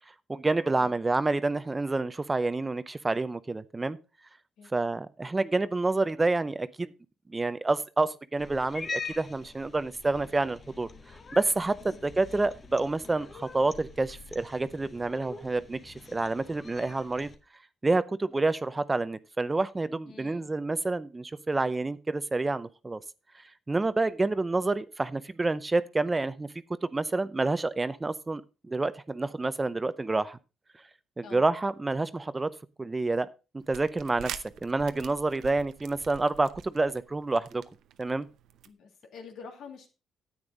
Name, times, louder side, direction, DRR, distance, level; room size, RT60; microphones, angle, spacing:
voice 1, 0.3-4.0 4.7-6.9 7.3-10.9 11.3-17.3 17.8-23.0 23.7-26.5 26.8-28.4 28.7-30.4 31.2-32.5 32.8-33.3 33.5-34.3 34.6-37.6 38.0-38.3, right 3 dB, 20° right, 0.6 m, -28 dB
Cat, 8.4-17.4, left 3 dB, 40° left, 1.4 m, -44 dB
voice 2, 20.1-20.5 24.4-24.5 31.2-31.4 38.7-39.9, left 5 dB, 75° left, 2.5 m, -47 dB
sound 1, 33.6-38.7, right 9 dB, 75° right, 0.7 m, -46 dB
9.8 x 8.9 x 3.9 m
cardioid pair, 90°, 0 cm